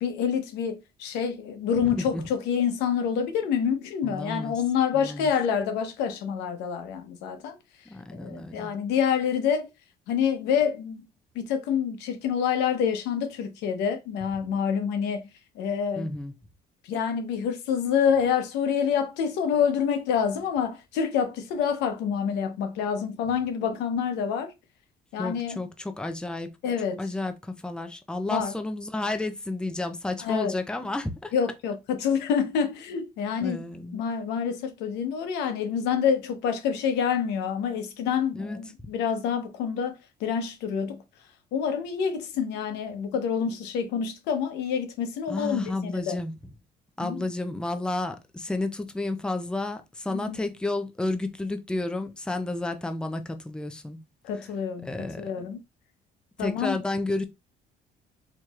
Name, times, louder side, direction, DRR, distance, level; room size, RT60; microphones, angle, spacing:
voice 1, 0.0-7.6 8.1-9.7 10.1-11.0 11.3-15.3 15.6-16.1 16.8-24.5 25.1-25.6 26.6-27.0 28.3-28.5 30.2-30.6 31.3-33.6 33.9-41.0 41.5-46.2 47.0-47.2 50.1-50.4 54.2-55.6 56.4-56.8, left 7 dB, 90° left, 0.9 m, -27 dB
voice 2, 1.8-2.2 4.0-4.6 4.9-5.3 7.9-8.7 16.0-16.3 25.2-26.5 27.0-31.3 33.4-34.0 38.3-38.6 45.3-46.3 47.0-54.0 54.8-55.3 56.4-57.2, left 2 dB, 5° left, 0.5 m, -31 dB
4.5 x 2.9 x 2.4 m
cardioid pair, 110°, 17 cm